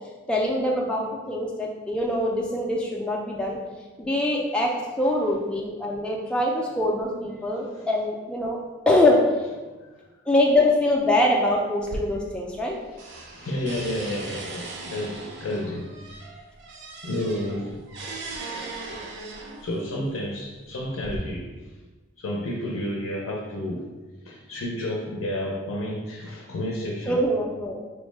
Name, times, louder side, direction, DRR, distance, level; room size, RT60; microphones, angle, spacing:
voice 1, 0.3-3.6 4.0-4.7 5.0-8.6 8.9-9.2 10.3-12.8 27.1-27.8, left 1 dB, 5° left, -2 dB, 0.3 m, -23 dB
sound 1, 11.8-12.7 13.0-19.8 20.6-21.2, right 2 dB, 55° right, 0.5 m, -38 dB
voice 2, 13.1-16.2 17.0-17.8 19.6-21.5 22.2-23.9 24.2-27.2, left 1 dB, 80° left, -2 dB, 0.5 m, -31 dB
4.3 x 2.1 x 3.2 m, 1.2 s
head